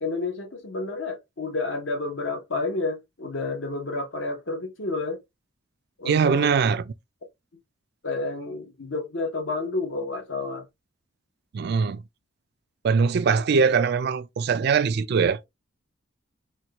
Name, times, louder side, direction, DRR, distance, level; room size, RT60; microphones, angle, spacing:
voice 1, 0.0-5.2 6.0-6.5 8.0-10.6, left 3 dB, 65° left, 1.0 m, -30 dB
voice 2, 6.1-6.8 11.5-12.0 12.8-15.4, right 5 dB, 50° right, 0.3 m, -21 dB
4.4 x 2.3 x 2.8 m
head